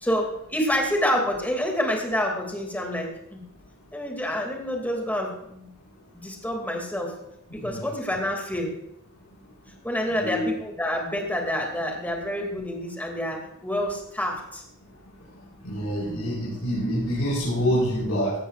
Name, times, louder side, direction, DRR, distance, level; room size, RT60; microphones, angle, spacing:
voice 1, 0.0-3.4 3.9-5.7 6.1-7.2 7.5-8.8 9.8-14.6, equal, 10° left, 1 dB, 2.2 m, -28 dB
voice 2, 10.1-10.5 15.6-18.3, equal, 80° left, -8 dB, 4.6 m, -26 dB
16.5 x 13.0 x 2.4 m, 0.79 s
head